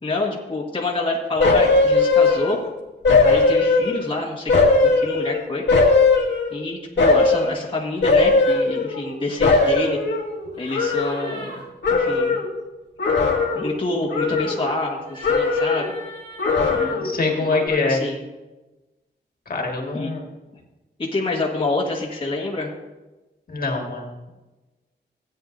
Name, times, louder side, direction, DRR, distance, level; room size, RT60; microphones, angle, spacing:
voice 1, 0.0-2.6 3.2-4.5 4.8-5.6 6.5-10.0 10.6-12.4 13.5-15.9 16.7-17.2 17.5-18.2 19.9-20.1 21.1-22.7, left 2 dB, 30° left, -3 dB, 1.4 m, -27 dB
sound 1, 1.4-2.7 3.0-4.1 4.5-6.6 7.0-7.5 8.0-9.1 9.4-11.6 11.8-12.5 13.0-13.8 14.1-15.0 15.2-15.9 16.4-17.2 17.6-17.7, left 3 dB, 80° left, 1.7 m, -19 dB
sound 2, 8.3-8.7 9.5-9.9 10.5-11.6 15.0-17.0, right 1 dB, 75° right, 4.1 m, -41 dB
voice 2, 17.0-18.0 19.5-20.2 23.5-24.3, left 3 dB, 50° left, 1 dB, 1.8 m, -24 dB
16.0 x 9.3 x 2.6 m, 1.1 s
wide cardioid pair, 135°, 19 cm